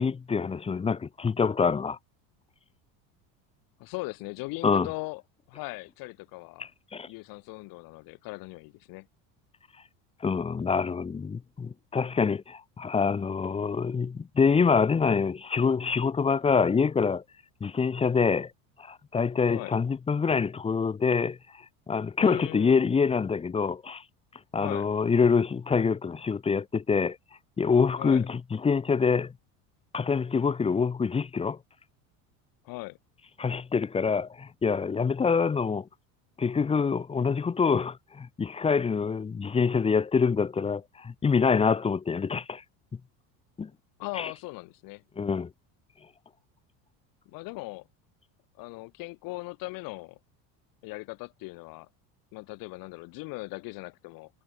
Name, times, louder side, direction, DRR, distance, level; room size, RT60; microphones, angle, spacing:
voice 1, 0.0-2.0 4.6-4.9 6.6-7.1 10.2-17.2 17.6-18.5 18.8-21.4 21.9-24.0 24.5-27.2 27.6-29.3 29.9-31.6 33.4-35.9 36.4-42.6 43.6-43.7 44.2-44.3 45.2-45.5, left 5 dB, 15° left, 1.1 m, -26 dB
voice 2, 3.8-5.2 5.5-6.7 7.1-9.1 19.5-19.7 22.2-22.9 24.6-24.9 28.0-28.3 32.6-33.0 44.0-45.0 47.3-47.9 48.6-50.2 50.8-51.9 52.3-54.3, left 24 dB, 65° left, 8.0 m, -39 dB
cardioid pair, 145°, 37 cm